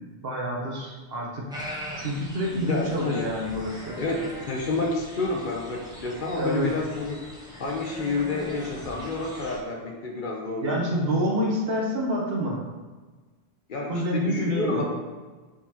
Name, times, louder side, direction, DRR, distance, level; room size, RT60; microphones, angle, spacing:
voice 1, 0.0-1.5 2.0-4.0 6.3-6.7 10.6-12.6 13.9-14.8, equal, 65° right, -2 dB, 1.2 m, -27 dB
sound 1, 1.5-9.6, equal, 5° right, 0.9 m, -41 dB
voice 2, 2.5-3.2 4.0-7.2 7.6-11.0 13.7-14.8, left 3 dB, 55° left, 0 dB, 0.8 m, -29 dB
4.7 x 4.0 x 2.8 m, 1.3 s
omnidirectional pair, 1.1 m